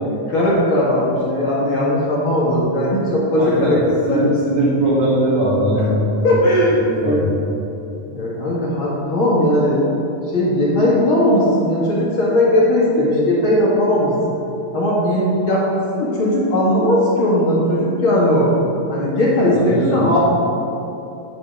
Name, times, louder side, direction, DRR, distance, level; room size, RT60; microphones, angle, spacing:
voice 1, 0.3-4.2 5.8-5.9 6.2-6.8 7.0-7.2 8.1-9.8 10.3-14.4 14.7-18.5 18.9-20.2, left 1 dB, 50° left, -6 dB, 1.8 m, -18 dB
voice 2, 3.3-3.8 4.1-6.3 6.7-7.4 19.5-20.1, equal, 45° right, -7 dB, 2.7 m, -20 dB
10.5 x 4.8 x 5.2 m, 2.9 s
omnidirectional pair, 4.1 m